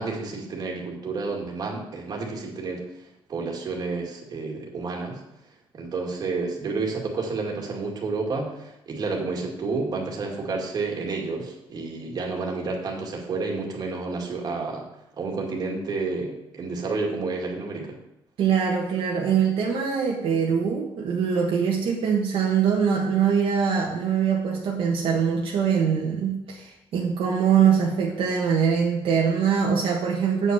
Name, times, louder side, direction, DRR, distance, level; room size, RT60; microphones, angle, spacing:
voice 1, 0.0-2.8 3.3-5.2 5.7-14.8 15.2-18.0, right 3 dB, 40° right, 0 dB, 2.1 m, -30 dB
voice 2, 18.4-30.5, right 7 dB, 65° right, -2 dB, 1.5 m, -23 dB
8.4 x 5.6 x 6.9 m, 0.87 s
cardioid pair, 155°, 10 cm